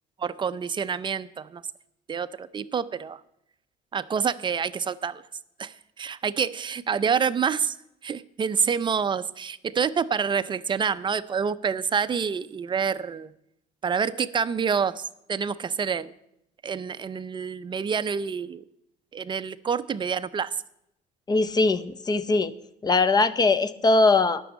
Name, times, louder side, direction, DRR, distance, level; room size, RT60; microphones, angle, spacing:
voice 1, 0.2-1.6 2.1-3.2 3.9-5.2 5.6-7.8 8.0-13.3 13.8-16.1 16.6-18.6 19.1-20.5, right 6 dB, 30° right, 14 dB, 0.5 m, -27 dB
voice 2, 21.3-22.5 22.8-24.4, left 3 dB, 25° left, 15 dB, 0.6 m, -21 dB
10.0 x 6.2 x 8.2 m, 0.78 s
cardioid pair, 110°, 17 cm